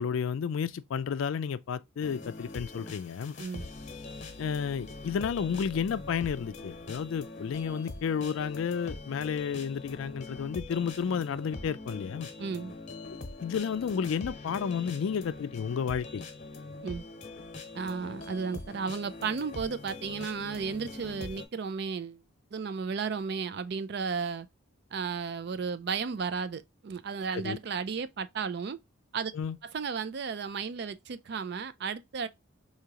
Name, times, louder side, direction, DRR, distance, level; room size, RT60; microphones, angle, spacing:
voice 1, 0.0-3.3 4.4-12.3 13.1-16.2 27.3-27.6 29.3-29.6, left 7 dB, 75° left, 0.3 m, -32 dB
sound 1, 2.0-21.5, left 3 dB, 40° left, 1.0 m, -43 dB
voice 2, 12.4-12.7 16.8-17.0 17.7-22.2 22.5-24.5 24.9-28.8 29.1-29.3 29.6-32.3, right 5 dB, 50° right, 0.4 m, -34 dB
4.9 x 2.8 x 2.8 m
head